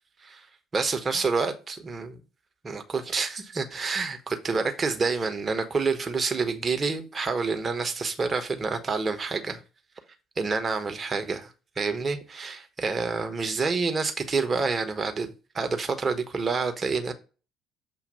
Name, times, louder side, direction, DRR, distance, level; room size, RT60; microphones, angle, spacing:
voice 1, 0.7-2.2 2.6-9.6 10.4-17.1, right 4 dB, 30° right, 1.0 m, -28 dB
7.0 x 2.5 x 5.4 m
figure-of-eight pair, 50°, 0 cm